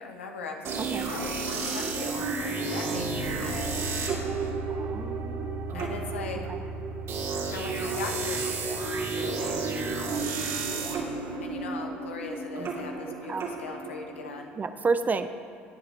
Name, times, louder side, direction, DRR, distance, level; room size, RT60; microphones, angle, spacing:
voice 1, 0.0-3.8 5.7-6.4 7.5-8.8 9.1-9.6 11.4-14.5, left 4 dB, 80° left, 2 dB, 1.3 m, -39 dB
sound 1, 0.6-14.4, right 4 dB, 45° right, 2.4 m, -32 dB
voice 2, 0.8-1.1 4.7-5.6 6.5-6.6 13.3-13.5 14.6-15.3, right 4 dB, 25° right, 11 dB, 0.6 m, -30 dB
sound 2, 2.8-11.8, right 3 dB, 80° right, 0.9 m, -39 dB
17.0 x 10.5 x 3.4 m, 2.4 s
figure-of-eight pair, 65°, 7 cm